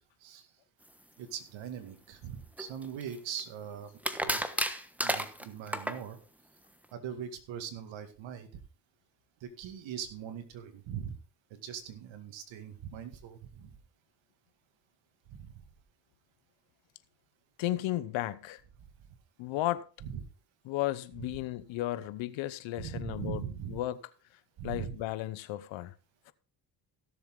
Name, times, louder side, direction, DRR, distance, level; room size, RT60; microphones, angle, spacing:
voice 1, 1.2-3.9 4.2-4.4 5.0-6.2 6.9-8.5 9.4-11.1 11.5-13.7 15.3-15.5 20.0-20.2 22.8-23.8 24.6-25.0, right 8 dB, 85° right, 2.1 m, -41 dB
sound 1, 2.6-3.4 4.0-6.0, equal, 5° right, 1.3 m, -32 dB
voice 2, 17.6-18.6 19.4-19.9 20.6-24.0 24.6-25.9 26.3-26.4, left 15 dB, 90° left, 1.0 m, -34 dB
16.5 x 7.2 x 3.8 m
cardioid pair, 80°, 45 cm